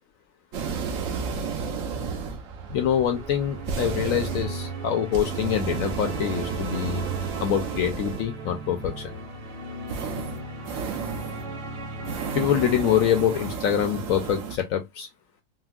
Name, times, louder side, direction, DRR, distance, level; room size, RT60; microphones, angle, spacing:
sound 1, 0.5-8.5 9.9-11.5 12.0-14.6, right 5 dB, 65° right, 1.0 m, -33 dB
sound 2, 2.4-13.5, right 4 dB, 90° right, 1.5 m, -35 dB
voice 1, 2.7-7.0 7.4-9.1 12.3-15.1, left 9 dB, 70° left, 0.8 m, -25 dB
4.2 x 2.0 x 2.3 m
omnidirectional pair, 1.7 m